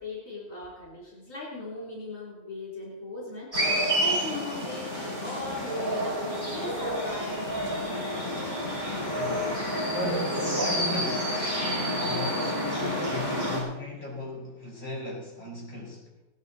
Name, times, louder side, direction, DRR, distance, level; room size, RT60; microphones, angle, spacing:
voice 1, 0.0-8.1, left 3 dB, 65° left, -5 dB, 3.9 m, -39 dB
sound 1, 3.5-13.6, equal, 35° right, 5.5 m, -29 dB
voice 2, 9.1-11.6 11.9-16.1, left 1 dB, 35° left, -5 dB, 4.6 m, -36 dB
18.5 x 10.5 x 4.2 m, 1.0 s
omnidirectional pair, 1.5 m